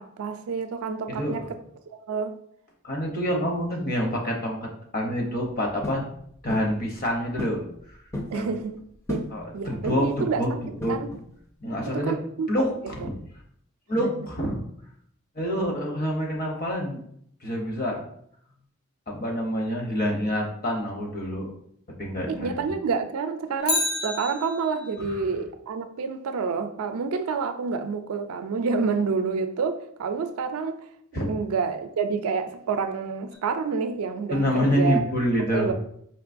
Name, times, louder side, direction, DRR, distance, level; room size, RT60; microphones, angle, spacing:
voice 1, 0.0-1.4 1.9-2.4 8.3-8.8 9.1-9.3 9.5-10.4 10.9-11.1 11.9-12.5 13.0-13.1 13.9-14.1 22.3-30.8 31.2-35.0 35.5-35.7, right 5 dB, 90° right, 0.4 m, -28 dB
voice 2, 1.1-1.4 2.8-6.1 6.4-7.6 8.3-8.5 9.3-10.5 10.8-11.0 11.6-12.2 12.5-13.2 13.9-14.6 15.3-17.0 17.4-18.0 19.1-21.5 21.9-22.7 25.0-25.2 31.1-31.3 34.3-35.7, equal, 40° left, 0.8 m, -27 dB
sound 1, 5.8-6.1 6.5-6.8 7.4-7.6 7.9-8.4 9.1-9.4 9.9-10.2 10.8-11.3, left 1 dB, 15° left, 0.4 m, -34 dB
Bicycle, 23.6-25.0 33.3-33.4, left 2 dB, 85° left, 1.0 m, -29 dB
4.5 x 3.0 x 2.5 m
head